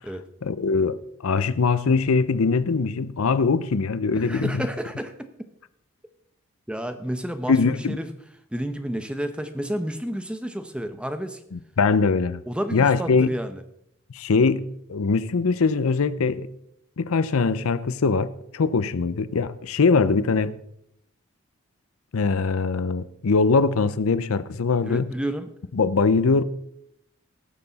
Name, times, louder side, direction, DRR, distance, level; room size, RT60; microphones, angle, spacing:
voice 1, 0.4-4.7 7.5-8.0 11.5-12.4 12.7-13.3 14.1-16.5 17.0-20.6 22.1-25.1 25.7-26.4, left 4 dB, 85° left, 0.6 m, -22 dB
voice 2, 4.1-5.1 6.7-8.1 8.5-11.4 12.5-13.6 24.8-25.5, equal, 5° right, 0.7 m, -30 dB
18.0 x 6.9 x 4.0 m
head